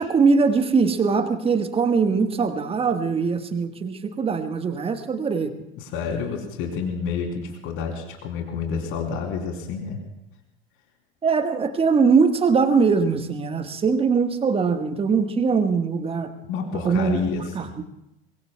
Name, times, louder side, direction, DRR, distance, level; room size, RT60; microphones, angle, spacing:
voice 1, 0.0-5.5 11.2-16.3 16.8-17.2 17.5-17.8, right 5 dB, 20° right, 8 dB, 1.4 m, -21 dB
voice 2, 5.8-10.0 16.4-17.7, left 5 dB, 45° left, 2 dB, 3.4 m, -29 dB
24.0 x 22.0 x 2.3 m, 0.89 s
figure-of-eight pair, 75°, 29 cm